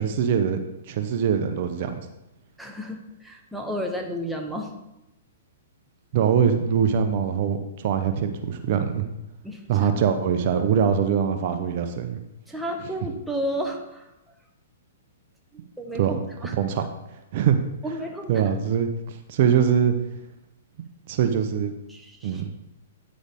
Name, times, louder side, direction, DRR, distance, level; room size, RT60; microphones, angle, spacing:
voice 1, 0.0-2.1 6.1-9.1 9.7-12.2 15.9-16.2 16.5-16.8 17.3-17.6 18.3-19.9 21.1-21.7 22.2-22.5, right 7 dB, 50° right, 7 dB, 0.8 m, -23 dB
voice 2, 2.6-4.7 9.4-9.6 12.5-14.0 15.5-16.5 17.8-18.5 21.9-22.4, equal, ahead, 1 dB, 1.1 m, -32 dB
9.5 x 6.3 x 3.6 m, 0.91 s
hypercardioid pair, 130°, 0 cm